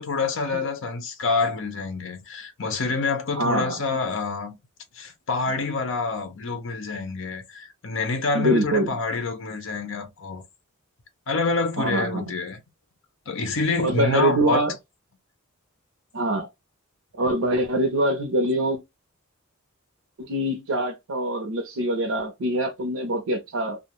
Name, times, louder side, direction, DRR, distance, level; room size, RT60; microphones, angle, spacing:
voice 1, 0.0-4.5 4.9-10.4 11.3-12.6 13.3-14.6, left 4 dB, 65° left, 0.7 m, -27 dB
voice 2, 3.3-3.8 8.3-8.9 11.8-12.3 13.8-14.7 16.1-16.5 17.2-18.8 20.2-23.8, right 1 dB, 85° right, 0.6 m, -24 dB
2.4 x 2.1 x 2.9 m
head